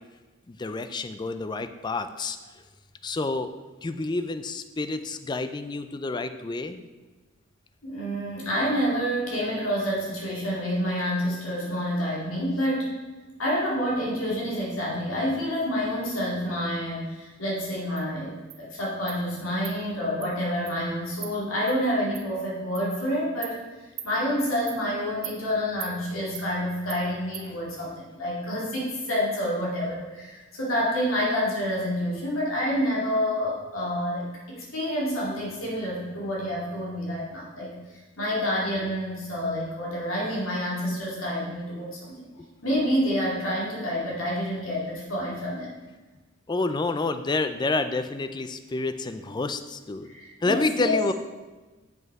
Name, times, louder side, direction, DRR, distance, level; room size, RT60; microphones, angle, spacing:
voice 1, 0.5-2.4 3.0-3.5 3.8-6.8 46.5-50.1 50.4-51.1, left 3 dB, 20° left, 10 dB, 0.3 m, -29 dB
voice 2, 7.8-13.0 13.4-23.6 24.0-37.7 38.2-42.3 42.6-45.7 50.1-51.0, equal, 85° left, -6 dB, 2.3 m, -28 dB
Insect, 18.0-18.1 18.5-18.6 19.1-19.2 19.6-19.8 20.2-20.3 20.7-20.8 21.2-21.3 21.7-21.8 22.1-22.2 22.7-22.9 23.4-23.5 24.0-24.1 24.7-24.8 25.2-25.4 25.8-25.9 26.3-26.5 26.9-27.0 27.3-27.5, right 10 dB, 65° right, 0.8 m, -38 dB
7.9 x 5.3 x 4.7 m, 1.2 s
head